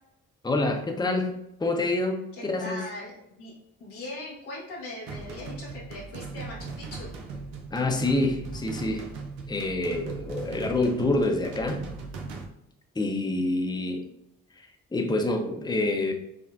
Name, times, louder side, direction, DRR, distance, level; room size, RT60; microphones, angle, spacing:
voice 1, 0.4-2.8 7.7-9.1 9.5-11.8 12.9-14.1 14.6-16.1, left 2 dB, 10° left, 3 dB, 0.7 m, -27 dB
voice 2, 2.3-3.5 3.8-7.1, left 1 dB, 90° left, -5 dB, 1.3 m, -40 dB
sound 1, 5.1-12.4, right 4 dB, 90° right, 0.6 m, -39 dB
6.1 x 2.1 x 2.5 m, 0.83 s
hypercardioid pair, 45°, 38 cm